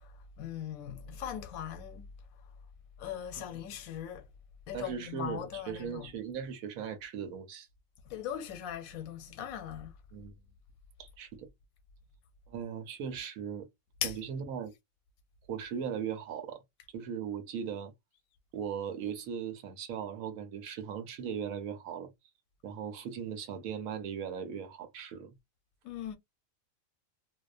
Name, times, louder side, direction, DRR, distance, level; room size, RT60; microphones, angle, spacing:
voice 1, 0.0-2.4 3.0-4.3 4.7-6.1 8.0-9.9 14.0-14.2 25.8-26.2, left 9 dB, 85° left, 1.0 m, -40 dB
voice 2, 4.7-7.7 10.1-10.3 11.0-11.5 12.5-13.7 14.0-14.7 15.5-16.6 16.9-17.9 18.5-22.1 22.6-25.4, right 7 dB, 90° right, 1.1 m, -38 dB
2.6 x 2.1 x 2.4 m
omnidirectional pair, 1.4 m